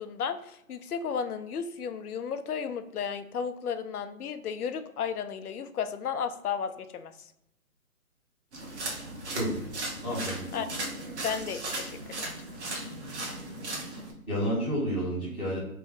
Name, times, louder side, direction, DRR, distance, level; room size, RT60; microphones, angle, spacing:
voice 1, 0.0-7.1 10.5-10.7 11.2-12.0 12.8-12.9, left 7 dB, 90° left, 10 dB, 0.5 m, -33 dB
sound 1, 8.5-14.1, right 2 dB, 50° right, 1.0 m, -36 dB
voice 2, 9.3-9.7 10.0-10.4 14.3-15.6, equal, 5° right, -16 dB, 0.6 m, -30 dB
3.1 x 2.0 x 3.9 m, 0.81 s
hypercardioid pair, 150°, 43 cm